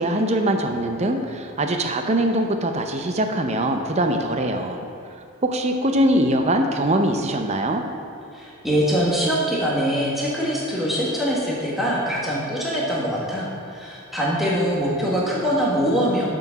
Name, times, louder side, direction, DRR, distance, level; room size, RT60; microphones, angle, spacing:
voice 1, 0.0-4.9 5.4-7.8, right 1 dB, 30° right, 5 dB, 0.5 m, -22 dB
voice 2, 8.3-16.3, equal, ahead, -6 dB, 1.3 m, -23 dB
6.9 x 6.2 x 5.7 m, 2.6 s
head